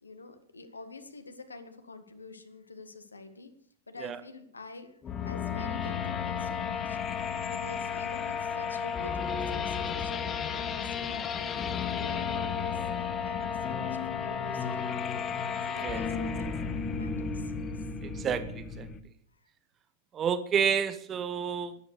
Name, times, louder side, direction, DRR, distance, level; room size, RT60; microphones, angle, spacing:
voice 1, 0.0-3.5 3.9-4.9 5.2-15.3 15.7-16.3 16.9-17.9 19.3-19.5, left 3 dB, 80° left, 8 dB, 1.8 m, -47 dB
sound 1, 5.0-19.0, left 6 dB, 25° left, 1.2 m, -33 dB
voice 2, 18.0-18.9 20.1-21.8, right 7 dB, 25° right, 12 dB, 1.1 m, -30 dB
13.5 x 11.5 x 6.8 m, 0.65 s
figure-of-eight pair, 90°, 0 cm